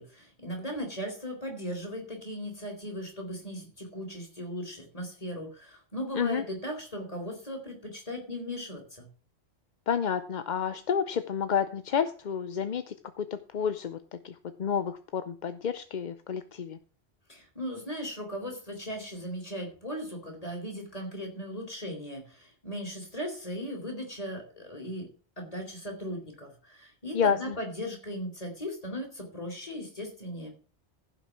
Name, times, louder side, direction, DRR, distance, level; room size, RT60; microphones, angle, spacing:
voice 1, 0.0-9.1 17.3-25.1 25.4-30.5, equal, 35° left, 1 dB, 4.0 m, -38 dB
voice 2, 9.9-14.0 14.2-16.8 27.1-27.6, left 7 dB, 50° left, 11 dB, 0.7 m, -30 dB
15.5 x 6.1 x 6.1 m, 0.39 s
omnidirectional pair, 1.1 m